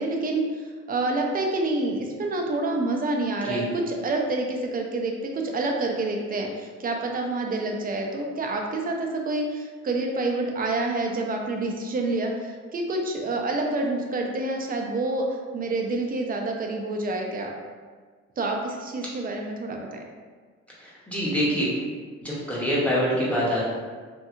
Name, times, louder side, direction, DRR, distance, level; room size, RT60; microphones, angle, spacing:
voice 1, 0.0-15.3 15.5-17.5 18.4-20.0, right 2 dB, 30° right, 2 dB, 0.4 m, -28 dB
voice 2, 20.8-21.7 22.2-23.6, equal, 5° left, -7 dB, 0.9 m, -25 dB
2.7 x 2.6 x 2.5 m, 1.5 s
cardioid pair, 90°, 30 cm